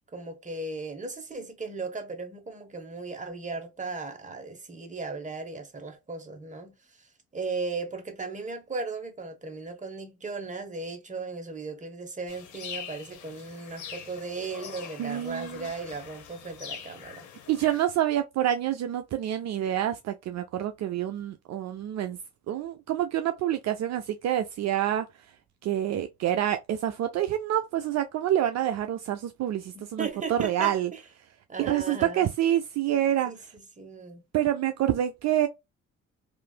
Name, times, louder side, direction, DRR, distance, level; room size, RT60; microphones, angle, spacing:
voice 1, 0.1-17.3 29.7-31.0 31.5-32.3 33.3-34.2, right 3 dB, 25° right, 1.1 m, -37 dB
sound 1, 12.3-17.9, left 8 dB, 75° left, 0.9 m, -43 dB
voice 2, 15.0-15.7 17.5-22.2 22.5-25.1 25.6-30.9 31.6-33.3 34.3-35.5, right 11 dB, 60° right, 0.4 m, -27 dB
3.2 x 2.5 x 2.3 m
cardioid pair, 90°, 30 cm